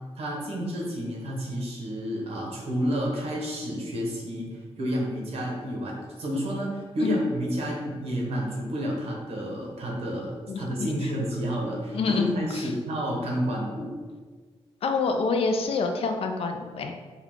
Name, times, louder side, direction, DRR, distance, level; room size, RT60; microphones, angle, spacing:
voice 1, 0.1-13.9, equal, 65° right, -2 dB, 1.1 m, -30 dB
voice 2, 10.5-11.1 11.9-12.7 14.8-16.9, left 4 dB, 65° left, 5 dB, 0.4 m, -27 dB
5.6 x 2.3 x 3.6 m, 1.5 s
wide cardioid pair, 160°, 11 cm